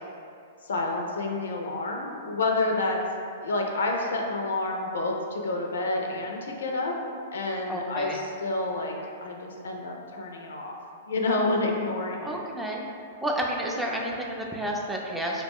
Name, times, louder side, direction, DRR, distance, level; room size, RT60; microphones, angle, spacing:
voice 1, 0.6-3.0 3.4-6.9 7.3-8.9 9.2-10.8 11.1-12.3, left 2 dB, 70° left, 1 dB, 0.3 m, -29 dB
voice 2, 7.7-8.2 12.2-12.8 13.2-15.4, right 1 dB, 5° right, -2 dB, 0.3 m, -30 dB
2.3 x 2.1 x 3.5 m, 2.4 s
figure-of-eight pair, 110°, 0 cm